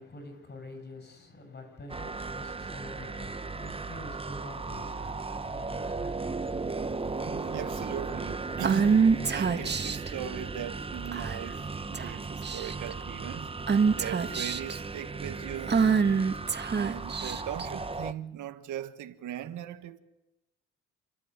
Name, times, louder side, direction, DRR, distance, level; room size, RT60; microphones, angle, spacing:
voice 1, 0.0-7.1, left 2 dB, 35° left, 7.7 m, -47 dB
sound 1, 1.9-18.1, right 3 dB, 20° right, 1.0 m, -36 dB
voice 2, 7.2-13.5 13.9-15.8 16.7-20.0, right 11 dB, 80° right, 1.6 m, -39 dB
Female speech woman speaking / Whispering, 8.6-10.1 11.1-11.5 11.9-12.1 12.4-12.9 13.7-14.8 15.7-17.7, right 5 dB, 35° right, 1.8 m, -25 dB
29.0 x 13.0 x 9.8 m
cardioid pair, 90°, 30 cm